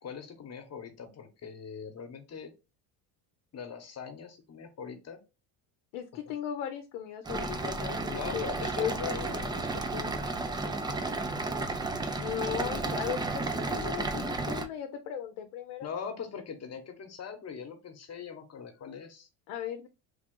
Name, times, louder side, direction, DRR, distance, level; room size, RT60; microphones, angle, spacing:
voice 1, 0.0-2.5 3.5-5.2 6.3-6.4 8.1-11.1 15.8-19.3, left 6 dB, 35° left, 7 dB, 1.0 m, -42 dB
voice 2, 5.9-8.9 9.2-9.3 12.2-15.9 19.5-19.9, left 9 dB, 80° left, 6 dB, 0.7 m, -37 dB
sound 1, 7.3-14.7, right 3 dB, 10° right, 0.3 m, -33 dB
3.5 x 2.4 x 3.7 m, 0.29 s
supercardioid pair, 100°, 44 cm